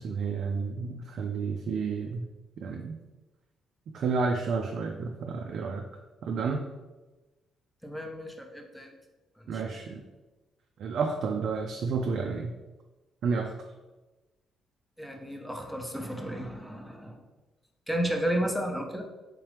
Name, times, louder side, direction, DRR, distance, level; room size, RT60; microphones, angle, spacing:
voice 1, 0.0-2.3 2.6-3.0 3.9-5.8 6.2-6.7 9.5-10.0 10.8-12.5 13.2-13.5, right 4 dB, 65° right, 2 dB, 0.3 m, -30 dB
voice 2, 7.8-8.9 9.4-9.6 15.0-17.2 17.9-19.0, right 1 dB, 5° left, 2 dB, 0.6 m, -32 dB
3.5 x 2.9 x 3.3 m, 1.1 s
cardioid pair, 90°, 0 cm